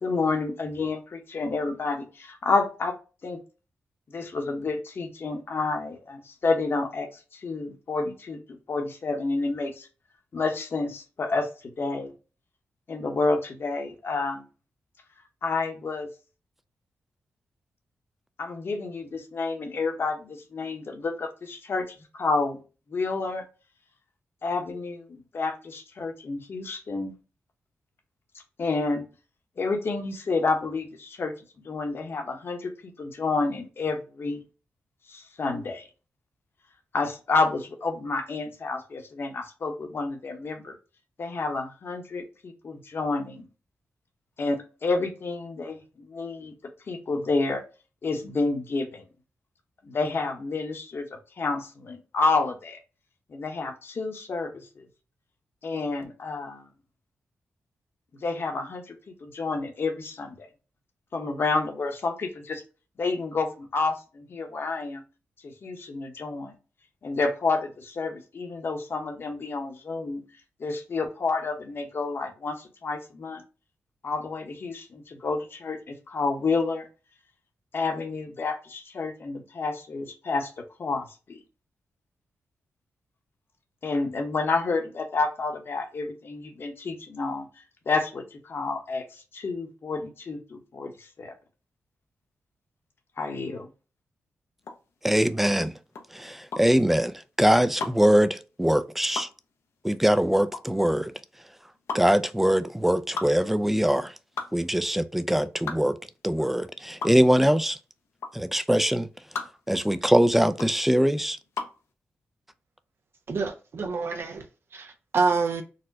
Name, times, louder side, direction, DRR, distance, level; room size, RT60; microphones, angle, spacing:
voice 1, 0.0-3.0 3.2-3.4 4.1-9.9 10.3-12.1 12.9-14.4 15.4-16.1 18.4-21.9 22.1-22.6 22.9-23.4 24.4-27.1 28.6-29.0 29.6-31.3 31.6-32.7 33.0-34.4 35.1-35.9 36.9-40.7 41.2-43.4 44.4-45.8 46.1-46.5 46.9-47.6 48.0-49.0 49.8-52.8 53.3-54.9 55.6-56.7 58.2-60.5 61.1-62.6 63.0-65.0 65.4-66.5 67.0-70.2 70.6-73.4 74.0-76.9 77.7-80.5 80.8-81.4 83.8-87.5 87.9-91.3 93.2-93.7, left 3 dB, 55° left, 0.9 m, -29 dB
sound 1, 94.6-111.8, left 4 dB, 75° left, 0.7 m, -38 dB
voice 2, 95.0-95.7 96.1-99.3 99.8-101.1 101.9-104.1 104.5-106.0 106.2-107.8 108.3-109.1 109.7-111.4, equal, 5° right, 0.3 m, -22 dB
voice 3, 113.3-114.4 114.7-115.6, right 4 dB, 55° right, 0.6 m, -27 dB
4.1 x 2.2 x 2.6 m
cardioid pair, 90°, 5 cm